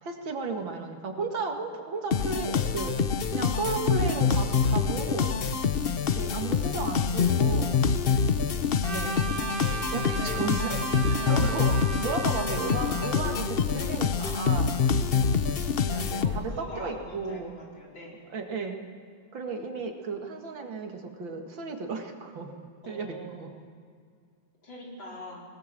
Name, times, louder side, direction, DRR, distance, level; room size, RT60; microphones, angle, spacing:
voice 1, 0.0-5.4 6.1-7.8 8.9-9.4 9.9-14.8 15.8-17.5 18.3-18.8 19.3-22.5 22.9-23.5, right 4 dB, 70° right, 3 dB, 2.7 m, -34 dB
sound 1, 2.1-16.7, left 6 dB, 90° left, 0.5 m, -26 dB
Trumpet, 8.8-13.5, right 5 dB, 35° right, 1.0 m, -36 dB
voice 2, 10.1-10.5 11.2-11.5 16.2-18.2 22.8-23.7 24.6-25.5, equal, 65° left, -3 dB, 5.3 m, -44 dB
21.0 x 20.0 x 7.6 m, 2.2 s
omnidirectional pair, 2.2 m